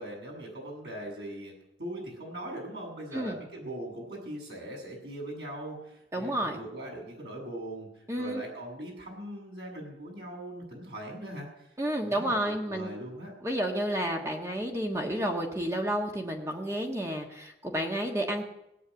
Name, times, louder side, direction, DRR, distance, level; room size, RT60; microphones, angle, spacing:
voice 1, 0.0-11.7 12.0-13.3, right 1 dB, 70° right, -1 dB, 7.6 m, -41 dB
voice 2, 6.1-6.6 8.1-8.4 11.8-12.9 13.4-18.4, right 1 dB, 15° right, 1 dB, 1.5 m, -31 dB
18.0 x 8.7 x 8.0 m, 0.85 s
head